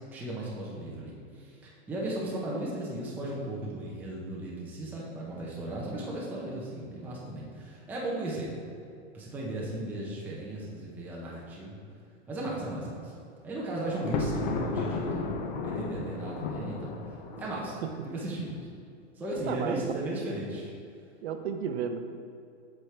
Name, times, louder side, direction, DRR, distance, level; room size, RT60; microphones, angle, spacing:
voice 1, 0.1-8.5 9.1-11.8 12.3-13.2 13.4-15.3 15.6-18.7 19.2-20.7, right 1 dB, 5° right, -5 dB, 0.6 m, -36 dB
Thunder, 13.9-18.0, left 4 dB, 40° left, 0.8 m, -34 dB
voice 2, 19.5-19.9 21.2-22.0, right 7 dB, 60° right, 7 dB, 0.8 m, -32 dB
7.8 x 6.3 x 3.3 m, 2.4 s
hypercardioid pair, 150°, 35 cm